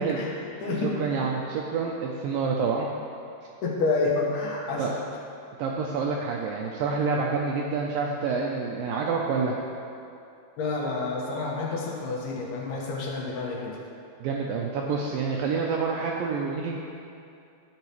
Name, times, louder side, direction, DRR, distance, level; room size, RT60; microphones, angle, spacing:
voice 1, 0.0-0.9 1.2-1.3 3.6-4.9 10.6-13.8, left 3 dB, 75° left, -3 dB, 3.1 m, -29 dB
voice 2, 0.8-2.9 4.8-4.9 5.6-9.6 14.2-16.8, right 5 dB, 85° right, -1 dB, 2.0 m, -28 dB
13.0 x 8.2 x 3.1 m, 2.5 s
omnidirectional pair, 4.6 m